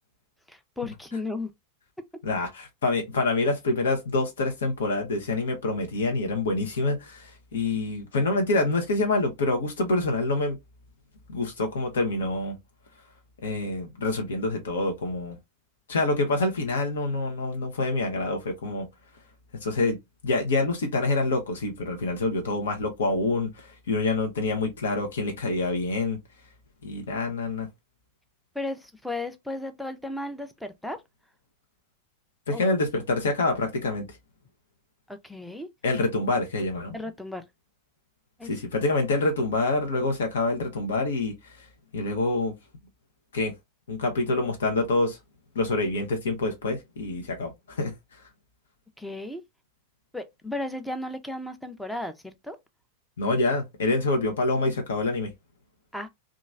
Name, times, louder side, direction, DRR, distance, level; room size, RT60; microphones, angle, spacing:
voice 1, 0.5-1.5 28.5-31.0 32.5-32.6 35.1-35.7 36.9-37.4 38.4-38.5 49.0-49.4 50.1-52.6 55.9-56.1, left 2 dB, 5° left, 0.5 m, -34 dB
voice 2, 2.2-10.6 11.3-12.6 13.4-15.4 15.9-18.9 19.6-20.0 20.2-26.2 26.8-27.7 32.5-34.1 35.8-36.9 38.4-41.3 41.9-42.5 43.3-43.5 43.9-45.2 45.5-47.9 53.2-55.3, left 2 dB, 65° left, 0.7 m, -26 dB
2.9 x 2.4 x 2.4 m
figure-of-eight pair, 90°, 0 cm